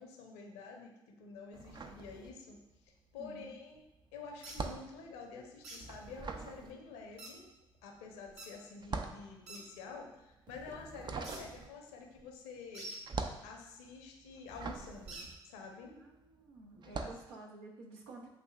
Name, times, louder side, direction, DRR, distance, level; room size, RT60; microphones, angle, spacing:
voice 1, 0.0-3.8 4.1-7.5 7.8-12.9 13.4-16.0 16.8-17.1, left 4 dB, 75° left, 1 dB, 0.8 m, -49 dB
sound 1, 1.5-2.8 3.0-16.2 16.8-17.3, right 4 dB, 35° right, 0.5 m, -44 dB
voice 2, 3.2-3.6 15.9-18.3, right 2 dB, 75° right, 0 dB, 0.9 m, -51 dB
sound 2, 4.4-4.6 5.6-5.8 7.2-7.3 8.4-8.5 9.5-9.6 11.2-11.4 12.7-13.0 15.1-15.3, right 2 dB, 55° right, 1.2 m, -46 dB
8.0 x 2.7 x 2.3 m, 0.93 s
hypercardioid pair, 50°, 13 cm